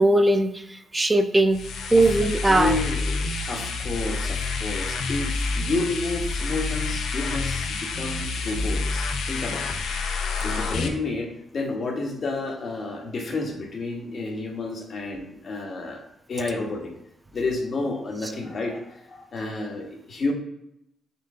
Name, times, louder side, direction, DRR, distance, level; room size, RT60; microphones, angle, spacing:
voice 1, 0.0-1.6 1.9-2.8 18.2-18.3, right 2 dB, 20° right, 7 dB, 0.4 m, -20 dB
sound 1, 1.5-10.9, left 4 dB, 75° left, 0.5 m, -28 dB
voice 2, 2.5-9.6 10.4-16.0 16.3-16.9 17.3-20.3, left 3 dB, 55° left, 1 dB, 1.2 m, -30 dB
4.4 x 2.4 x 3.6 m, 0.78 s
supercardioid pair, 55°, 0 cm